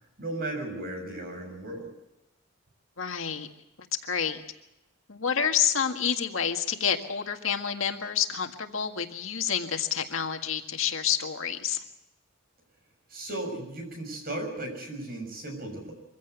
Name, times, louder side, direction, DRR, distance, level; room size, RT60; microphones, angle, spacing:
voice 1, 0.2-1.9 13.1-15.9, right 2 dB, 50° right, 4 dB, 6.6 m, -35 dB
voice 2, 3.0-3.5 4.0-4.4 5.1-11.8, left 8 dB, 85° left, 5 dB, 1.9 m, -28 dB
24.0 x 16.0 x 8.1 m, 0.91 s
head